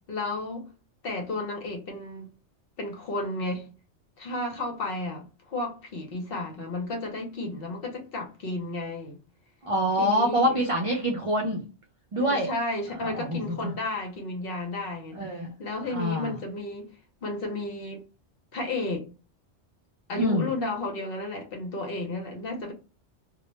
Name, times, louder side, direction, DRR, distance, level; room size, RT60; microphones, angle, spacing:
voice 1, 0.1-0.7 1.0-2.3 2.8-3.7 4.2-9.2 10.0-10.7 12.2-16.9 17.2-18.0 18.5-19.1 20.1-22.7, left 2 dB, 60° left, 0.8 m, -33 dB
voice 2, 9.6-11.6 12.1-12.5 13.0-13.7 15.1-15.5 15.9-16.3 20.2-20.5, equal, 55° right, 0.3 m, -26 dB
2.2 x 2.1 x 2.9 m
omnidirectional pair, 1.2 m